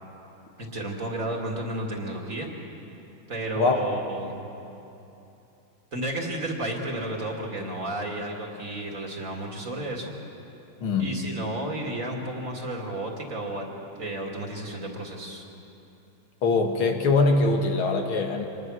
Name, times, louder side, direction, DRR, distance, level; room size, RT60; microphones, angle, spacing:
voice 1, 0.6-2.5 3.3-4.4 5.9-10.2 11.0-13.7 14.0-15.4, right 1 dB, 40° right, 0 dB, 2.5 m, -32 dB
voice 2, 10.8-11.1 16.4-18.5, left 3 dB, 85° left, 3 dB, 2.6 m, -22 dB
25.5 x 20.0 x 6.3 m, 2.9 s
omnidirectional pair, 2.2 m